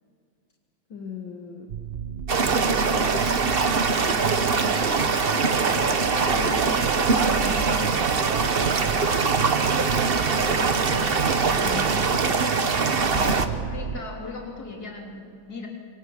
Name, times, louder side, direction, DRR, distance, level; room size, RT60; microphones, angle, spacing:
voice 1, 0.9-1.7 2.3-3.2 4.4-5.1 11.6-12.4, left 5 dB, 70° left, 1 dB, 2.4 m, -38 dB
sound 1, 1.7-14.0, right 8 dB, 80° right, 0.5 m, -34 dB
sound 2, 2.3-13.5, right 4 dB, 40° right, 1.0 m, -22 dB
voice 2, 5.7-6.7 7.0-8.0 8.5-9.8 10.3-10.9 13.0-15.7, left 3 dB, 50° left, 0 dB, 4.0 m, -37 dB
26.5 x 24.0 x 7.2 m, 2.5 s
omnidirectional pair, 2.1 m